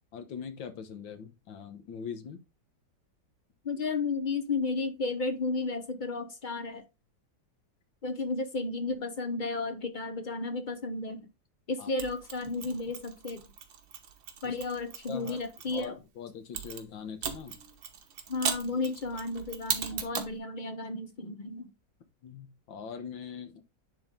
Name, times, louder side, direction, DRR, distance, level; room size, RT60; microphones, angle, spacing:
voice 1, 0.1-2.4 11.8-11.9 14.4-14.6 15.1-15.4 15.7-17.6 18.7-18.8 19.9-20.0 22.2-23.6, left 6 dB, 85° left, 1.9 m, -42 dB
voice 2, 3.6-6.8 8.0-11.3 11.7-13.4 14.4-16.0 18.3-21.7, left 3 dB, 60° left, 0.5 m, -33 dB
Mechanisms, 12.0-15.8 16.5-20.4, right 7 dB, 90° right, 1.9 m, -38 dB
10.5 x 3.8 x 3.6 m
omnidirectional pair, 2.0 m